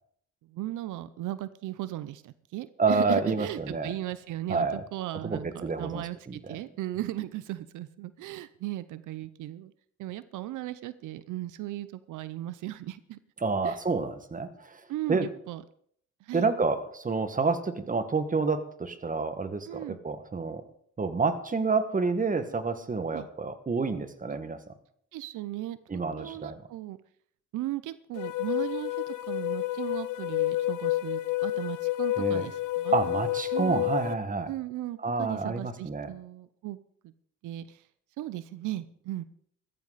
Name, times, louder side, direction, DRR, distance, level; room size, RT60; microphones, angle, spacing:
voice 1, 0.5-9.7 10.0-13.2 13.6-13.8 14.9-15.6 16.2-16.5 19.7-20.0 23.1-23.3 25.1-27.0 27.5-33.0 33.5-33.8 34.5-36.8 37.0-37.1 37.4-37.9 38.2-39.2, right 15 dB, 85° right, 15 dB, 0.7 m, -37 dB
voice 2, 2.8-3.9 4.5-4.8 5.2-6.0 6.3-6.6 13.4-14.8 15.1-15.3 16.3-20.6 21.0-24.6 25.9-26.6 32.2-32.5 32.9-34.5 35.0-36.1, right 4 dB, 25° right, 10 dB, 1.7 m, -29 dB
sound 1, 28.1-34.1, left 16 dB, 80° left, 0.9 m, -29 dB
15.0 x 14.0 x 4.1 m, 0.64 s
cardioid pair, 90°, 30 cm